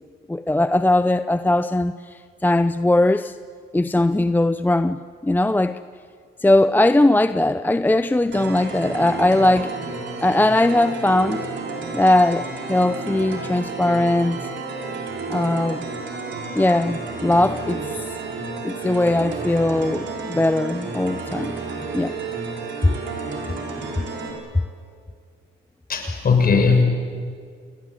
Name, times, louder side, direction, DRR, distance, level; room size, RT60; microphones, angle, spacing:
voice 1, 0.3-3.3 3.7-5.8 6.4-9.7 10.2-11.4 11.9-14.4 15.3-15.8 16.6-17.8 18.6-21.5 21.9-22.2, left 1 dB, 10° left, 0.6 m, -19 dB
sound 1, 8.3-24.3, right 3 dB, 65° right, 6.2 m, -31 dB
voice 2, 25.9-26.8, left 5 dB, 50° left, 6.5 m, -17 dB
28.5 x 20.5 x 9.7 m
cardioid pair, 90°, 20 cm